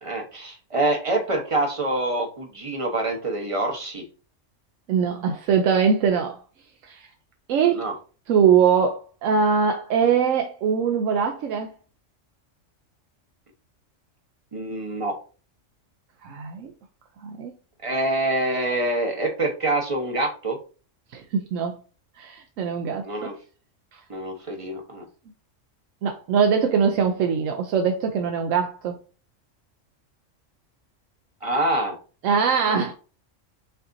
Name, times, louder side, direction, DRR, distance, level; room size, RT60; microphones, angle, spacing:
voice 1, 0.0-4.0 7.7-7.9 14.5-15.2 17.8-20.6 23.0-23.3 24.1-25.1 31.4-32.0, right 2 dB, 30° right, 0.9 m, -26 dB
voice 2, 4.9-6.4 6.8-7.1 7.5-7.8 8.3-11.7 16.2-16.7 17.2-17.5 21.1-21.8 22.2-23.0 23.9-24.0 26.0-29.0 32.2-32.9, right 6 dB, 80° right, 1.0 m, -22 dB
5.7 x 2.7 x 2.6 m
omnidirectional pair, 1.3 m